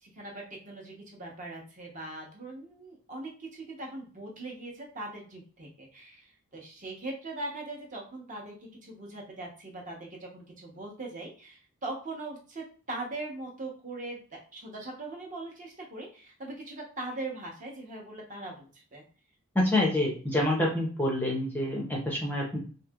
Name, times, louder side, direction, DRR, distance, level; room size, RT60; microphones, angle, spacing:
voice 1, 0.0-14.2 14.5-19.0, right 2 dB, 35° right, -1 dB, 0.8 m, -41 dB
voice 2, 19.5-22.6, left 1 dB, 10° left, -2 dB, 0.5 m, -27 dB
3.1 x 2.7 x 2.3 m, 0.39 s
head